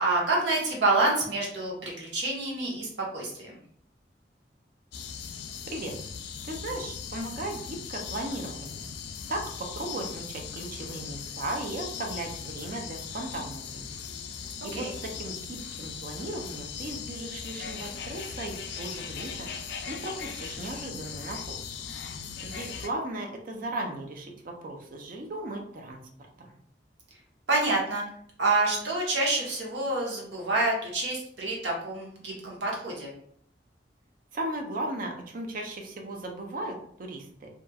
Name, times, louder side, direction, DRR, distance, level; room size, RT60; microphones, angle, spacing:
voice 1, 0.0-3.6 14.7-14.9 27.5-28.0 28.4-33.1, right 2 dB, 80° right, -3 dB, 0.9 m, -27 dB
sound 1, 4.9-22.9, left 7 dB, 70° left, 0.3 m, -39 dB
voice 2, 5.7-6.0 6.4-8.9 9.3-14.0 14.6-19.5 19.9-21.6 22.4-26.0 26.4-26.6 34.3-37.5, right 1 dB, 50° right, 3 dB, 0.5 m, -36 dB
2.9 x 2.4 x 2.3 m, 0.64 s
head